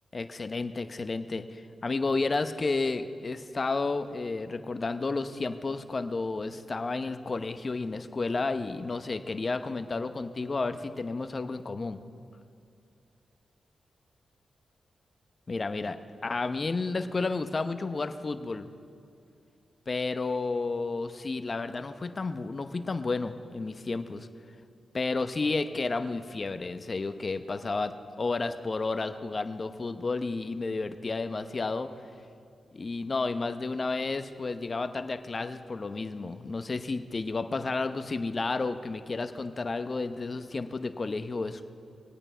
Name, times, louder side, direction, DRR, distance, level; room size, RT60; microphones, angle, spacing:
voice 1, 0.1-12.0 15.5-18.7 19.9-24.3 24.9-31.9 32.7-41.7, left 3 dB, 40° left, 9 dB, 0.8 m, -31 dB
21.5 x 8.8 x 5.6 m, 2.4 s
cardioid pair, 60°, 0 cm